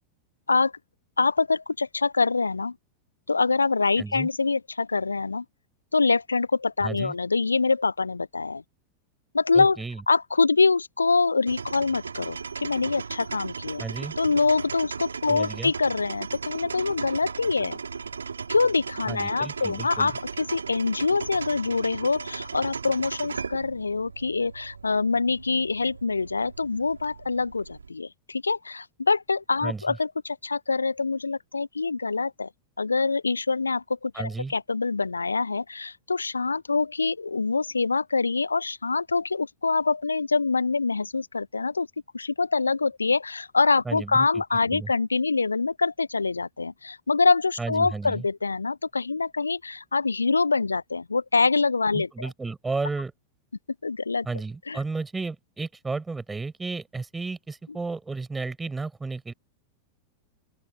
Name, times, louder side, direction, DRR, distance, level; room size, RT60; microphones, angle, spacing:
voice 1, 1.2-2.7 3.3-5.4 5.9-8.6 9.3-9.8 10.1-13.8 14.2-17.8 18.5-32.5 32.8-41.9 42.1-52.3 53.8-54.3 54.7-54.8, left 4 dB, 80° left, 0.6 m, -25 dB
voice 2, 4.0-4.3 6.8-7.1 9.5-10.0 13.8-14.1 15.3-15.7 19.1-20.1 29.6-30.0 34.1-34.5 43.9-44.3 44.7-44.9 47.6-48.2 51.9-53.1 54.3-59.3, right 3 dB, 10° right, 7.3 m, -33 dB
sound 1, 11.5-27.9, right 5 dB, 75° right, 4.8 m, -37 dB
open air
figure-of-eight pair, 90°, 0 cm